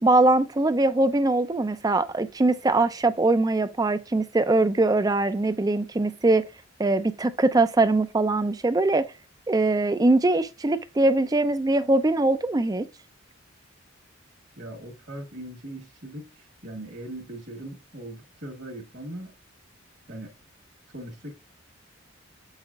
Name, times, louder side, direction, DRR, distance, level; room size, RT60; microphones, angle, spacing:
voice 1, 0.0-6.4 6.8-9.1 9.5-12.9, right 2 dB, 20° right, 0.4 m, -22 dB
voice 2, 14.6-19.3 20.1-20.3 20.9-21.4, right 1 dB, 50° right, 1.4 m, -40 dB
7.8 x 5.6 x 2.4 m
head